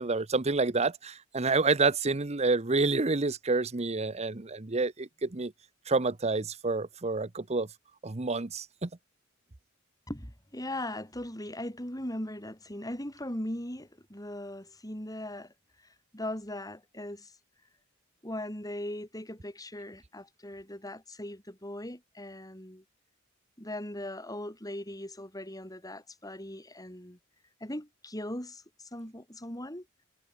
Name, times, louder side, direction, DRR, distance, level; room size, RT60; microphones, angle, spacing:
voice 1, 0.0-5.5 5.9-7.7 8.0-8.9, right 3 dB, 30° right, 0.9 m, -28 dB
voice 2, 10.1-15.5 16.1-17.3 18.2-22.8 23.6-27.2 27.6-29.9, left 1 dB, 20° left, 7.3 m, -39 dB
head